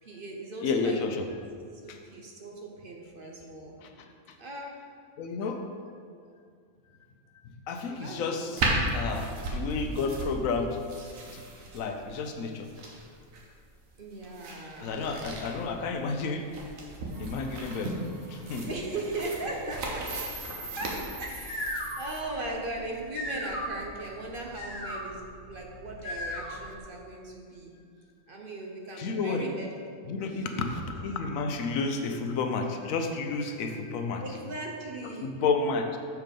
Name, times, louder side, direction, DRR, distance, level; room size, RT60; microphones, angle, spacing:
voice 1, 0.0-1.0 1.7-3.8 4.4-4.7 7.9-8.4 14.0-15.0 18.6-20.2 20.7-27.7 28.3-30.7 34.2-35.3, right 2 dB, 45° right, 0 dB, 0.9 m, -38 dB
voice 2, 0.6-1.2 1.9-2.0 3.8-3.9 5.2-5.6 7.7-8.6 8.9-10.8 11.3-11.4 11.7-12.7 14.8-16.5 17.2-17.9 18.3-18.7 29.0-29.5 30.1-34.2 35.2-36.0, left 4 dB, 80° left, 5 dB, 1.1 m, -31 dB
sound 1, 8.6-21.8, right 2 dB, 80° right, 1.4 m, -36 dB
sound 2, 17.1-22.2, right 2 dB, 25° right, 0.5 m, -44 dB
sound 3, 21.2-26.8, equal, 50° left, 1.3 m, -38 dB
6.9 x 4.6 x 5.2 m, 2.2 s
omnidirectional pair, 1.4 m